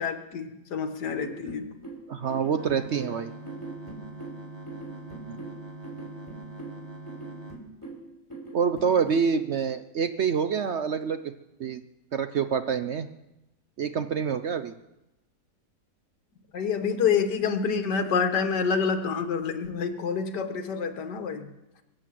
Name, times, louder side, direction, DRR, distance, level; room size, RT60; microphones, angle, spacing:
voice 1, 0.0-1.7 16.5-21.5, left 6 dB, 75° left, 6 dB, 1.9 m, -27 dB
sound 1, 1.1-9.3, right 3 dB, 10° left, 3.3 m, -42 dB
voice 2, 2.1-3.3 5.3-5.4 8.5-11.3 11.6-11.8 12.1-13.1 13.8-14.7, right 6 dB, 60° right, 9 dB, 0.7 m, -27 dB
sound 2, 2.6-7.6, right 2 dB, 15° right, 1.6 m, -43 dB
23.0 x 7.8 x 7.5 m, 0.93 s
omnidirectional pair, 1.8 m